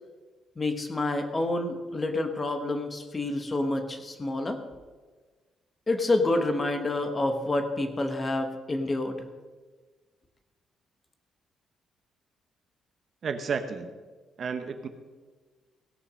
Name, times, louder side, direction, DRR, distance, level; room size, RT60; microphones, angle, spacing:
voice 1, 0.6-4.6 5.9-9.1, left 2 dB, 20° left, 7 dB, 1.1 m, -28 dB
voice 2, 13.2-13.9 14.4-14.9, right 5 dB, 40° right, 8 dB, 0.9 m, -31 dB
17.0 x 6.8 x 6.2 m, 1.4 s
cardioid pair, 155°, 0 cm